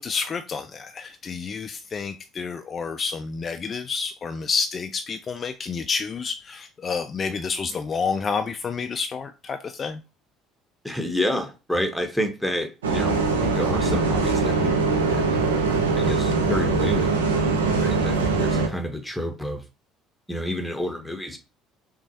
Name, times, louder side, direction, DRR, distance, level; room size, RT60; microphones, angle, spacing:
voice 1, 0.0-10.0, left 5 dB, 35° left, 0.3 m, -29 dB
voice 2, 10.8-15.2 16.0-17.1 17.8-19.6 20.3-21.4, left 1 dB, ahead, 0.9 m, -29 dB
Bus, 12.8-18.7, right 4 dB, 80° right, 0.6 m, -22 dB
5.8 x 2.2 x 2.7 m
figure-of-eight pair, 60°, 0 cm